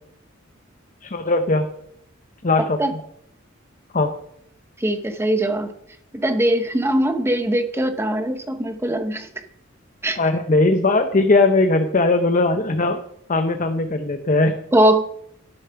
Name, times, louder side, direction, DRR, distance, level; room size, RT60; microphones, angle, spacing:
voice 1, 1.0-1.6 2.4-3.0 3.9-4.1 10.2-13.0 13.3-14.6, left 2 dB, 40° left, 6 dB, 0.8 m, -19 dB
voice 2, 4.8-5.7 6.1-9.3 10.0-10.2 14.7-15.0, right 1 dB, 10° right, 7 dB, 0.9 m, -21 dB
12.0 x 7.0 x 5.8 m, 0.73 s
head